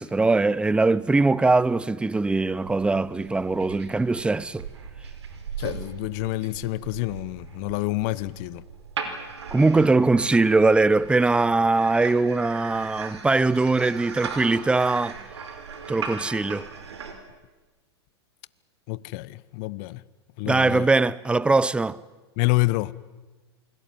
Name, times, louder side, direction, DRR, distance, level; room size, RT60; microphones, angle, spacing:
voice 1, 0.0-4.7 9.5-15.2 15.9-16.7 20.4-22.0, right 3 dB, 5° right, 0.8 m, -21 dB
sound 1, 2.3-17.1, right 6 dB, 80° right, 4.7 m, -38 dB
voice 2, 5.6-8.6 18.9-20.0 20.4-20.9 22.4-22.9, left 21 dB, 50° left, 1.0 m, -27 dB
28.5 x 22.0 x 9.2 m
hypercardioid pair, 105°, 14 cm